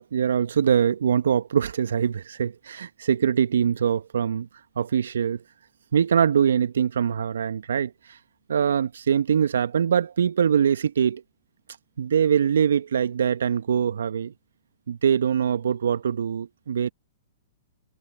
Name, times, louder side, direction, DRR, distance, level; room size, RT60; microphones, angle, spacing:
voice 1, 0.0-4.5 4.8-5.4 5.9-8.2 8.5-11.2 12.0-14.3 14.9-16.9, right 8 dB, 75° right, 1.4 m, -23 dB
hypercardioid pair, 115°, 0 cm